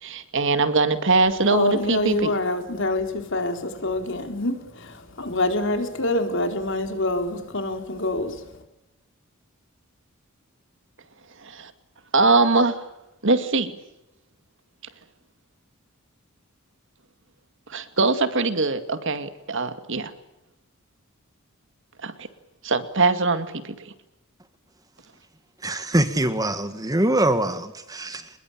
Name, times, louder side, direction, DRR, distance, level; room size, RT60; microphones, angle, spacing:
voice 1, 0.0-2.3 11.4-11.7 12.1-12.8 13.2-13.7 17.7-20.1 22.0-22.3 22.6-23.7, right 3 dB, 60° right, 10 dB, 2.2 m, -22 dB
voice 2, 1.5-8.6, left 2 dB, 60° left, 6 dB, 4.3 m, -26 dB
voice 3, 25.6-28.3, right 1 dB, 15° right, 10 dB, 1.8 m, -23 dB
26.5 x 21.5 x 8.8 m, 0.91 s
head